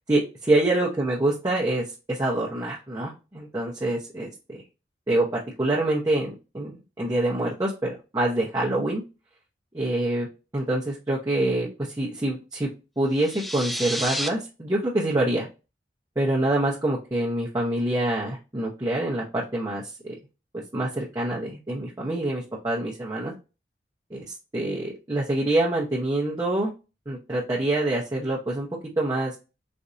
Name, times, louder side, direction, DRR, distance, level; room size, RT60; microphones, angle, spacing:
voice 1, 0.1-4.6 5.1-9.0 9.7-10.3 10.5-12.7 13.0-15.5 16.2-20.1 20.7-23.3 24.1-24.3 24.5-26.7 27.1-28.7 29.0-29.4, right 1 dB, 20° right, -5 dB, 0.7 m, -26 dB
sound 1, 13.1-14.3, equal, ahead, 0.3 m, -30 dB
4.2 x 2.6 x 2.5 m, 0.29 s
head